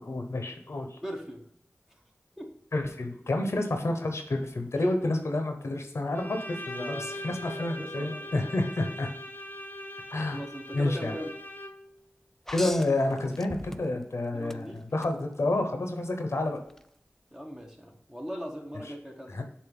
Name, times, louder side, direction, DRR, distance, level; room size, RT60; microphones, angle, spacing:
voice 1, 0.0-1.0 2.7-9.1 10.1-10.4 10.7-11.1 12.5-16.6 19.3-19.4, left 2 dB, 75° left, 5 dB, 0.9 m, -29 dB
voice 2, 1.0-1.5 2.4-2.6 4.8-4.9 6.7-8.6 8.8-8.9 10.3-11.3 14.3-14.8 17.3-19.4, equal, 10° right, 1 dB, 1.3 m, -40 dB
Bowed string instrument, 6.1-12.0, left 1 dB, 45° left, 0.9 m, -41 dB
sound 1, 12.5-14.1 14.5-15.1 16.7-16.8, left 1 dB, 5° left, 0.3 m, -39 dB
7.0 x 2.7 x 5.3 m, 0.69 s
wide cardioid pair, 40°, 5 cm